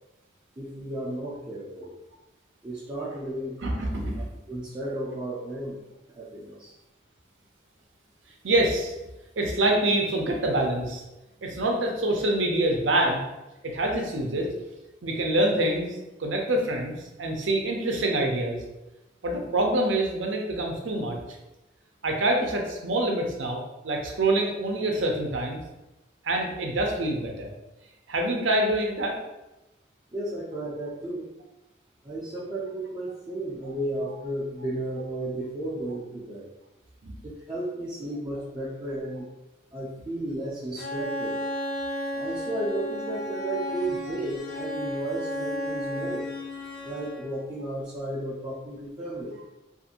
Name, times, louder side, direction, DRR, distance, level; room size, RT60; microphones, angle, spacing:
voice 1, 0.6-1.9 2.6-3.6 4.5-5.8 6.1-6.7 30.1-31.3 32.0-36.5 37.2-39.3 39.7-41.4 42.1-46.3 46.8-49.4, right 1 dB, 25° right, -8 dB, 0.4 m, -33 dB
voice 2, 3.6-4.2 8.4-8.9 9.4-11.0 11.4-13.2 13.6-14.5 15.0-18.6 19.2-21.2 22.0-25.6 26.2-27.5 28.1-29.2 37.0-37.1, right 1 dB, 85° right, 1 dB, 0.6 m, -26 dB
Bowed string instrument, 40.8-47.5, left 1 dB, 50° left, 0.7 m, -33 dB
2.5 x 2.5 x 2.8 m, 1.0 s
head